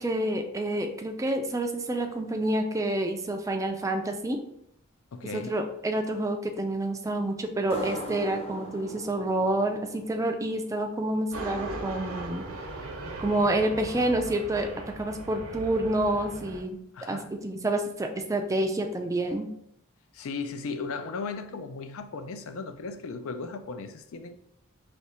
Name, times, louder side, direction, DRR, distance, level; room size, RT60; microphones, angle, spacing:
voice 1, 0.0-4.4 5.3-12.4 13.2-14.7 15.0-16.8 17.1-19.5, right 1 dB, 15° right, 0.4 m, -28 dB
voice 2, 5.1-5.6 16.9-17.3 20.1-24.4, left 4 dB, 65° left, 0.4 m, -36 dB
sound 1, 7.7-11.0, equal, 25° left, 0.7 m, -40 dB
sound 2, 11.3-16.6, right 2 dB, 65° right, 0.7 m, -38 dB
3.4 x 2.8 x 4.2 m
head